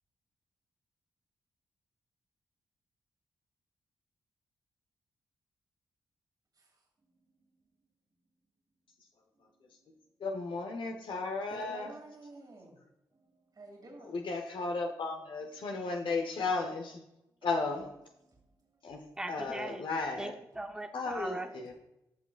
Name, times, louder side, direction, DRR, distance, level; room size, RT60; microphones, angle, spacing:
voice 1, 10.2-11.9 14.1-17.0 17.4-17.9 18.8-19.0 19.3-20.3 20.9-21.7, left 3 dB, 65° left, 3 dB, 0.9 m, -34 dB
voice 2, 11.5-12.7 13.6-14.1 17.4-17.8 21.1-21.7, right 2 dB, 45° right, 0 dB, 2.4 m, -50 dB
voice 3, 19.2-19.9 20.2-21.5, right 1 dB, 10° right, 6 dB, 0.7 m, -39 dB
13.5 x 6.0 x 2.4 m, 0.88 s
supercardioid pair, 40°, 9 cm